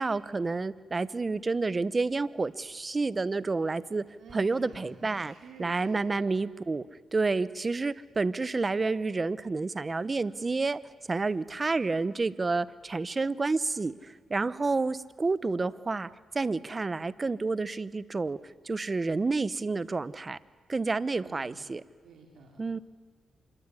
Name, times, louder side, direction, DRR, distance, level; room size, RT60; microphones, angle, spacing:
voice 1, 0.0-4.1 4.3-6.9 7.1-10.8 11.1-16.1 16.3-20.4 20.7-21.8 22.6-22.8, right 3 dB, 30° right, 17 dB, 0.9 m, -29 dB
voice 2, 4.2-6.3 21.2-21.7 22.0-22.6, right 4 dB, 75° right, 1 dB, 3.7 m, -51 dB
26.0 x 23.0 x 9.9 m, 1.5 s
cardioid pair, 75°, 0 cm